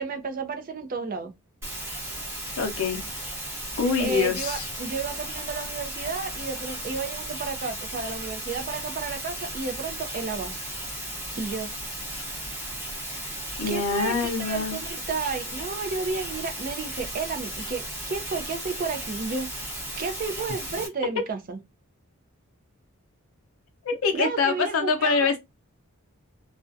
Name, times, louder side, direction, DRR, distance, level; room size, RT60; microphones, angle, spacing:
voice 1, 0.0-1.3 4.0-10.5 11.3-11.7 13.1-13.4 13.7-19.5 20.0-21.6 24.1-25.2, right 4 dB, 40° right, 0.4 m, -32 dB
sound 1, 1.6-20.9, right 1 dB, 10° right, 0.8 m, -35 dB
voice 2, 2.6-3.0 3.8-4.7 13.6-14.8 23.8-25.4, left 5 dB, 70° left, 0.6 m, -25 dB
2.4 x 2.1 x 2.5 m
head